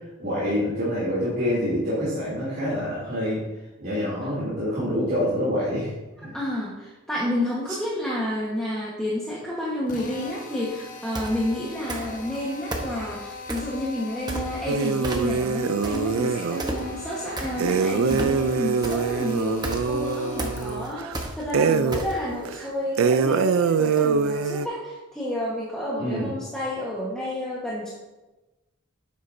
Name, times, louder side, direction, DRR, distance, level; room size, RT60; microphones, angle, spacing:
voice 1, 0.2-3.4 3.8-5.9 6.2-6.3 26.0-26.3, equal, 50° right, -10 dB, 3.0 m, -26 dB
voice 2, 6.3-27.9, left 1 dB, 5° left, -7 dB, 1.3 m, -30 dB
Drill, 9.9-20.9, left 1 dB, 40° left, 0.9 m, -40 dB
sound 1, 11.1-11.4 11.9-12.4 12.7-13.8 14.3-14.8 15.0-15.5 15.8-22.4, right 2 dB, 20° right, 1.0 m, -32 dB
sound 2, 14.7-16.7 17.6-21.1 21.5-22.1 22.5-22.6 23.0-24.7, right 5 dB, 80° right, 0.4 m, -24 dB
9.9 x 7.9 x 2.7 m, 1.1 s
head